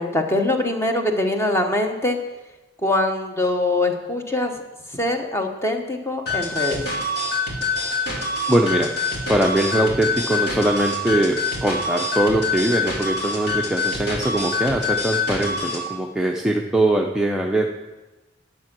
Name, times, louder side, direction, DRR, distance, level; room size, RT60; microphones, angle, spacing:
voice 1, 0.0-2.2 2.8-4.5 4.9-6.9, left 2 dB, 15° left, 4 dB, 0.9 m, -23 dB
sound 1, 6.3-15.8, left 3 dB, 60° left, 2.4 m, -25 dB
voice 2, 8.5-8.9 9.3-17.7, right 1 dB, 5° right, 0 dB, 0.5 m, -21 dB
10.5 x 7.4 x 6.0 m, 1.1 s
head